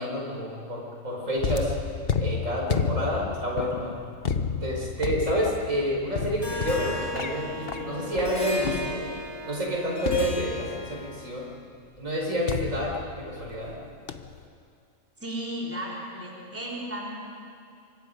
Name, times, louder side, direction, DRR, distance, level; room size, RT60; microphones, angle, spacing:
voice 1, 0.0-1.7 2.2-4.0 4.5-9.0 9.4-11.4 12.0-13.0 13.3-13.8, equal, 65° right, -2 dB, 5.4 m, -29 dB
sound 1, 1.4-9.3 10.1-11.1 12.5-13.8 14.1-14.4, left 6 dB, 45° left, 1.1 m, -31 dB
Harp, 6.4-11.4, left 1 dB, 15° left, 2.3 m, -36 dB
voice 2, 15.2-17.2, equal, 10° right, -4 dB, 3.7 m, -34 dB
26.5 x 24.0 x 5.4 m, 2.4 s
omnidirectional pair, 1.5 m